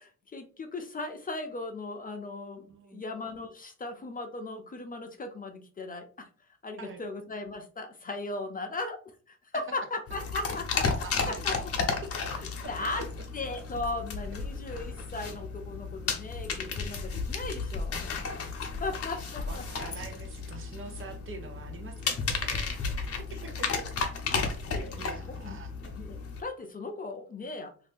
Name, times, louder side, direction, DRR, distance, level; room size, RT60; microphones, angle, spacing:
voice 1, 0.0-6.3 6.6-9.0 9.3-10.9 11.3-11.6 12.7-13.0 13.3-18.0 18.8-19.6 24.3-24.5 24.7-25.6 26.0-27.7, left 2 dB, 30° left, 5 dB, 0.6 m, -37 dB
voice 2, 2.7-3.1 6.8-7.0 11.0-11.6 12.0-12.1 13.0-13.1 19.2-23.9 24.4-25.7, right 4 dB, 45° right, 5 dB, 0.8 m, -45 dB
sound 1, 10.1-26.4, left 4 dB, 50° left, 0.8 m, -33 dB
2.7 x 2.5 x 3.4 m, 0.39 s
cardioid pair, 90°, 30 cm